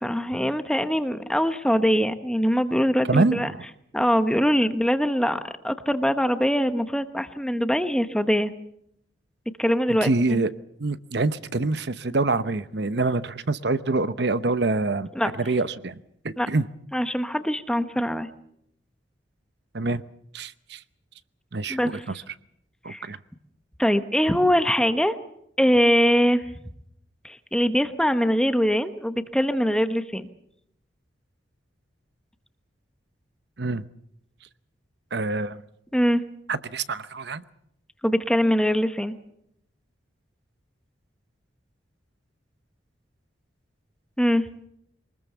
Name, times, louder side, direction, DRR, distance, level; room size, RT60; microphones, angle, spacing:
voice 1, 0.0-3.5 3.9-8.5 9.6-10.4 15.1-15.3 16.4-16.5 16.9-18.3 21.7-22.0 22.9-23.1 23.8-25.1 25.6-26.4 27.2-30.3 35.9-36.2 38.0-39.1 44.2-44.5, equal, 5° left, 9 dB, 1.1 m, -22 dB
voice 2, 3.0-3.6 10.0-10.5 10.8-16.0 16.2-16.7 19.7-20.0 20.3-20.8 21.5-21.8 22.1-22.2 22.8-23.2 33.6-33.8 35.1-35.6 36.5-37.4, right 3 dB, 60° right, 13 dB, 0.9 m, -25 dB
24.0 x 20.5 x 6.8 m, 0.74 s
head